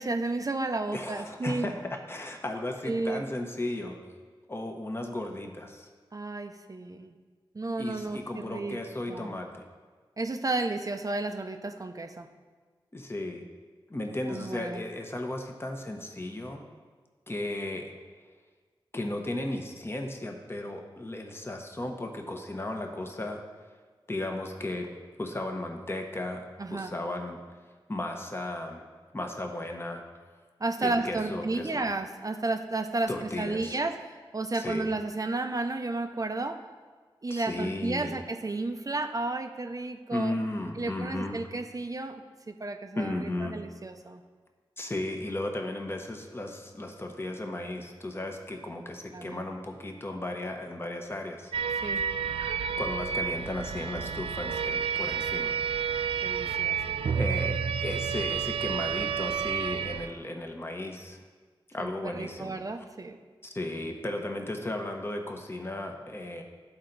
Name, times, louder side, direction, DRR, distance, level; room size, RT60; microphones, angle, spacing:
voice 1, 0.0-1.7 2.9-3.2 6.1-7.1 7.5-8.8 9.1-9.3 10.2-12.3 14.3-14.8 26.6-26.9 30.6-34.0 34.3-36.6 37.2-40.3 40.8-44.2 49.1-49.4 51.8-52.0 56.2-56.8 61.8-63.2, right 2 dB, 40° right, 6 dB, 0.6 m, -32 dB
voice 2, 0.9-4.0 4.5-5.9 7.8-9.6 12.9-13.4 13.9-16.7 17.3-17.9 18.9-23.4 24.1-24.9 25.2-27.4 27.9-28.8 29.1-30.0 30.8-31.9 33.1-33.8 34.5-34.9 37.3-38.2 40.1-41.4 43.0-43.6 44.8-51.5 52.8-55.6 57.2-61.2 61.7-62.6 63.4-66.4, left 1 dB, 25° left, 3 dB, 1.0 m, -35 dB
sound 1, 51.5-60.1, right 7 dB, 85° right, 0.4 m, -30 dB
12.0 x 4.3 x 4.0 m, 1.5 s
cardioid pair, 50°, 9 cm